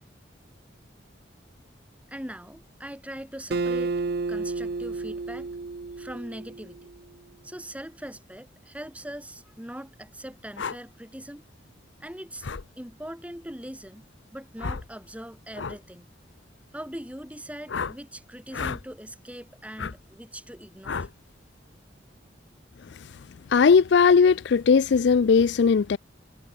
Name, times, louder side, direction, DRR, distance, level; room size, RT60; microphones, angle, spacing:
voice 1, 2.1-4.0 4.3-5.5 6.0-6.9 7.4-11.4 12.0-12.5 12.8-16.1 16.7-21.1, equal, 5° right, 7.2 m, -41 dB
Acoustic guitar, 3.5-6.9, right 3 dB, 60° right, 0.6 m, -31 dB
sound 1, 10.6-10.8 12.4-12.6 14.6-14.9 15.5-15.8 17.7-18.0 18.5-18.8 19.8-19.9 20.8-21.1, left 5 dB, 90° left, 0.8 m, -32 dB
voice 2, 23.5-26.0, left 5 dB, 65° left, 0.4 m, -18 dB
head